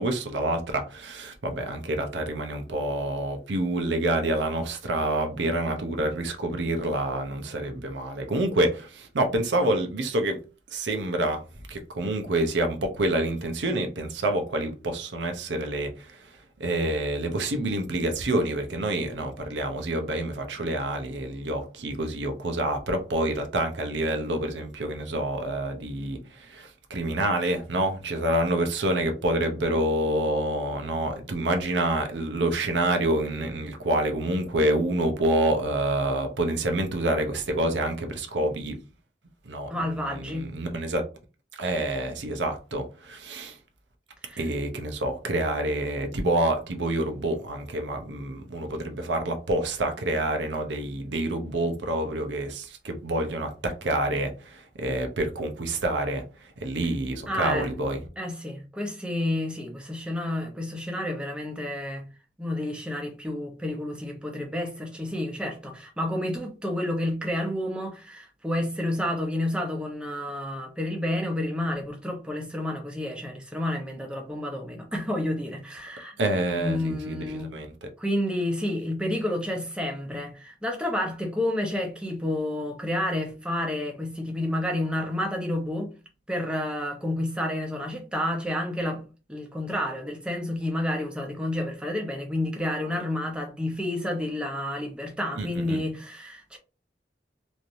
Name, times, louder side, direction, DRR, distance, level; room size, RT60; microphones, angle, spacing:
voice 1, 0.0-10.4 10.7-11.4 11.7-16.3 16.6-38.8 39.5-41.0 41.5-43.6 44.4-56.2 56.6-58.0 76.2-77.7 95.4-95.8, right 1 dB, 85° right, 0.7 m, -27 dB
voice 2, 39.7-40.5 44.3-44.4 57.3-57.7 58.2-62.1 62.4-76.1 76.6-77.5 78.0-85.9 86.3-89.0 89.3-96.6, left 1 dB, 5° right, 0.7 m, -30 dB
3.2 x 2.7 x 2.6 m
head